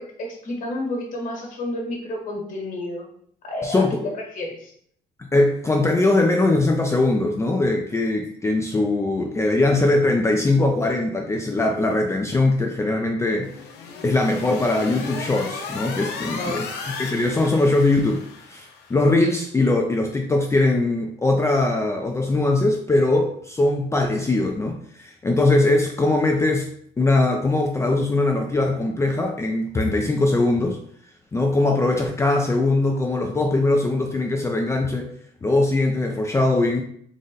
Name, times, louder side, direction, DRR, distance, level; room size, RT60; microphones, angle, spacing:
voice 1, 0.0-3.1 3.4-4.7 16.2-16.7, left 1 dB, 50° left, 0 dB, 1.4 m, -30 dB
voice 2, 3.6-4.0 5.2-13.5 14.0-16.7 17.0-18.2 18.5-26.7 27.0-30.8 31.3-35.1 35.4-36.8, left 2 dB, 15° left, 2 dB, 0.4 m, -21 dB
sound 1, 13.4-19.0, left 5 dB, 85° left, 0.7 m, -35 dB
3.9 x 2.1 x 3.8 m, 0.63 s
cardioid pair, 110°, 17 cm